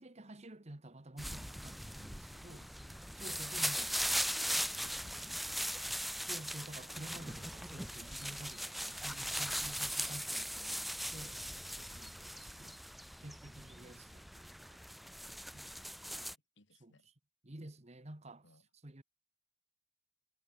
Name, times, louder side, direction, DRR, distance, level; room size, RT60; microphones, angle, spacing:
voice 1, 0.0-2.6 3.2-3.9 6.3-11.4 11.8-12.7 13.2-14.8 15.5-15.6 16.8-16.9 17.4-18.4 18.8-19.0, right 1 dB, 35° right, 1.3 m, -51 dB
sound 1, 1.2-16.4, equal, ahead, 0.6 m, -39 dB
voice 2, 2.5-3.1 3.5-6.5 6.7-7.6 15.7-17.1 18.4-18.7, left 1 dB, 60° left, 5.4 m, -65 dB
head